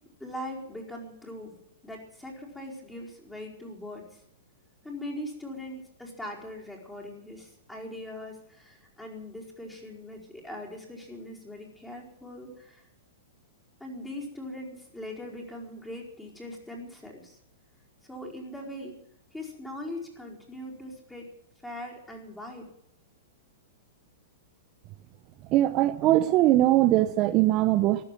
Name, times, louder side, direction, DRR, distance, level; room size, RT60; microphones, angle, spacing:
voice 1, 0.2-1.6 1.8-4.2 4.8-12.9 13.8-17.4 18.0-19.0 19.3-21.3 21.6-22.7, left 1 dB, 5° left, -2 dB, 4.8 m, -41 dB
voice 2, 25.5-28.0, right 15 dB, 35° right, 10 dB, 0.8 m, -21 dB
15.0 x 11.5 x 7.6 m, 0.72 s
hypercardioid pair, 135°, 0 cm